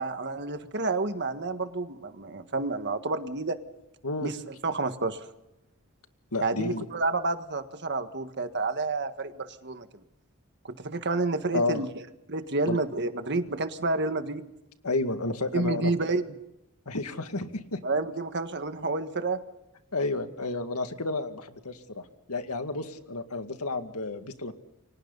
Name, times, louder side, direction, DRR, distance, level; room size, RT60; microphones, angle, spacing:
voice 1, 0.0-3.6 4.2-5.2 6.4-9.9 10.6-11.9 12.3-14.5 15.5-16.3 17.8-19.4, right 3 dB, 50° right, 8 dB, 1.6 m, -29 dB
voice 2, 6.3-6.9 11.5-11.8 12.7-12.8 14.8-15.9 16.9-17.8 19.9-24.5, left 2 dB, 85° left, 7 dB, 2.2 m, -31 dB
29.5 x 24.5 x 4.1 m, 0.88 s
head